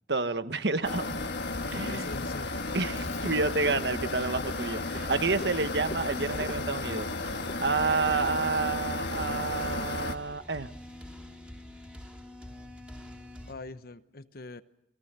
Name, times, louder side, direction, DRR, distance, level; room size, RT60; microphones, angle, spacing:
voice 1, 0.1-1.2 1.7-2.1 2.7-7.3 7.6-10.7, right 3 dB, 70° right, 10 dB, 1.3 m, -29 dB
sound 1, 0.8-10.2, left 3 dB, 80° left, 1.5 m, -34 dB
sound 2, 0.9-13.5, left 1 dB, 5° right, 3.5 m, -46 dB
voice 2, 1.6-2.5 13.5-14.6, left 2 dB, 55° left, 11 dB, 1.0 m, -42 dB
Frog, 3.0-8.2, left 2 dB, 40° left, 1.5 m, -47 dB
29.0 x 21.5 x 6.8 m, 0.84 s
head